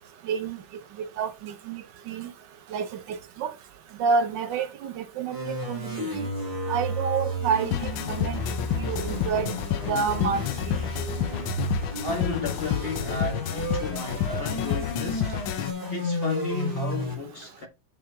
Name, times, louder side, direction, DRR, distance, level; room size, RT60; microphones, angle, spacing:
voice 1, 0.3-0.6 1.0-2.3 2.7-3.5 4.0-6.1 6.7-8.4 8.7-9.5 9.9-10.4, right 6 dB, 70° right, 1.3 m, -29 dB
sound 1, 5.3-17.1, equal, 30° right, 5.2 m, -32 dB
sound 2, 7.7-15.7, left 11 dB, 90° left, 1.5 m, -30 dB
voice 2, 12.0-15.4 15.9-17.7, left 2 dB, 35° left, 1.5 m, -33 dB
7.6 x 5.6 x 3.5 m
omnidirectional pair, 2.1 m